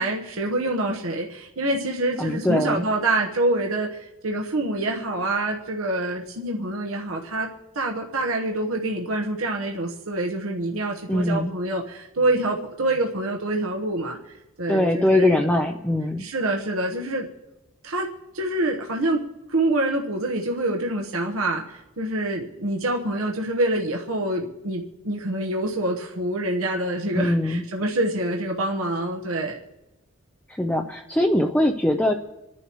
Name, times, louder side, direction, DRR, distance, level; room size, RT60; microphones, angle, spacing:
voice 1, 0.0-7.5 7.7-15.4 16.2-17.3 17.8-18.1 18.3-29.6, right 2 dB, 85° right, 0 dB, 1.1 m, -26 dB
voice 2, 2.2-2.8 11.1-11.5 14.7-16.2 27.1-27.6 30.5-32.1, left 1 dB, 5° left, 4 dB, 0.4 m, -22 dB
27.5 x 10.5 x 3.0 m, 1.0 s
head